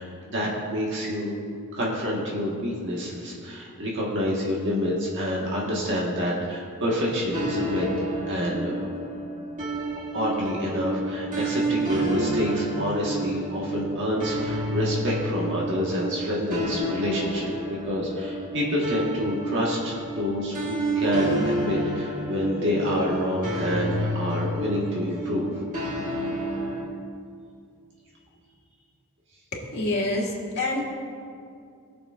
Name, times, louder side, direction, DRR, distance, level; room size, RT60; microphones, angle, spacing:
voice 1, 0.0-1.3 1.7-7.9 8.3-8.9 10.1-25.5, equal, 55° right, -4 dB, 1.5 m, -28 dB
sound 1, 7.3-26.8, right 1 dB, 35° right, 2.0 m, -30 dB
voice 2, 29.5-30.8, left 2 dB, 50° left, -3 dB, 2.2 m, -27 dB
20.5 x 6.9 x 2.5 m, 2.3 s
head